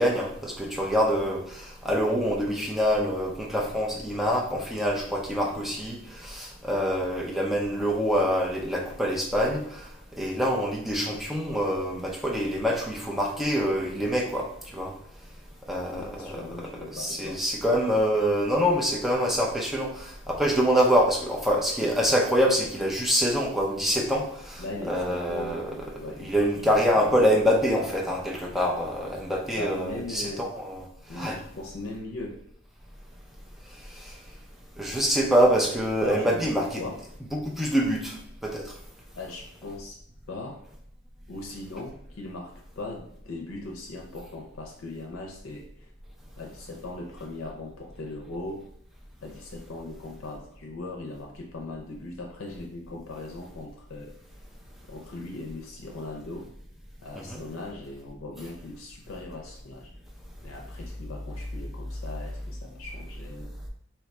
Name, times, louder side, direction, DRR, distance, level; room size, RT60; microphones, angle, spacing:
voice 1, 0.0-9.8 10.2-14.5 14.7-14.9 15.7-25.7 26.2-30.8 31.1-31.4 34.8-36.7 37.3-38.2 38.4-38.7 57.2-57.4, equal, ahead, -1 dB, 0.4 m, -25 dB
voice 2, 16.0-17.4 24.6-27.0 29.6-30.5 31.1-32.4 36.0-37.0 39.2-40.0 40.3-40.6 41.3-45.9 46.4-48.6 49.2-54.1 54.9-56.5 57.0-59.9 60.4-63.5, left 2 dB, 90° left, 0 dB, 0.5 m, -39 dB
2.9 x 2.3 x 4.0 m, 0.70 s
head